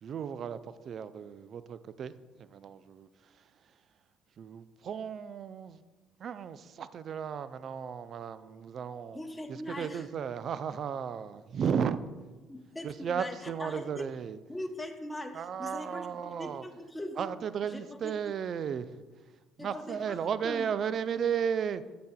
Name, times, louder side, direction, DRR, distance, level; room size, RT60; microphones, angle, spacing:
voice 1, 0.0-2.1 2.4-3.5 4.4-5.8 6.2-9.2 9.5-12.1 12.8-14.4 15.3-16.6 17.2-19.0 19.6-22.0, right 7 dB, 50° right, 0.4 m, -34 dB
voice 2, 9.1-10.1 12.5-14.1 14.5-17.3 17.6-18.1 19.6-20.7, left 1 dB, 15° left, 0.8 m, -41 dB
13.5 x 5.9 x 2.3 m
hypercardioid pair, 50°, 0 cm